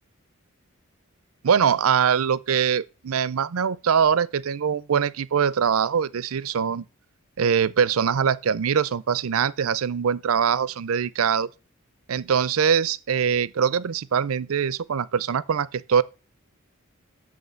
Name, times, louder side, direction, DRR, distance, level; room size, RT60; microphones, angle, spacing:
voice 1, 1.4-6.8 7.4-11.5 12.1-16.0, right 7 dB, 85° right, 0.5 m, -23 dB
6.5 x 6.4 x 6.9 m
head